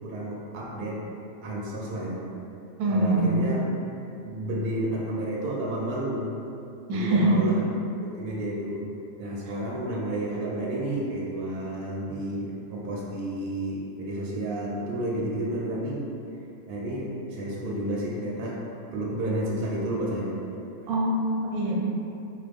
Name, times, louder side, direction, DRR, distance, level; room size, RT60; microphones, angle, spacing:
voice 1, 0.0-1.0 1.4-2.2 2.9-3.7 4.2-6.3 6.9-7.6 8.0-8.9 9.2-16.0 16.7-18.6 18.9-20.4, right 1 dB, 60° right, -4 dB, 0.6 m, -31 dB
voice 2, 2.8-3.6 6.9-7.4 20.9-21.8, right 1 dB, 85° right, -2 dB, 1.1 m, -23 dB
3.2 x 2.0 x 3.5 m, 2.6 s
omnidirectional pair, 1.6 m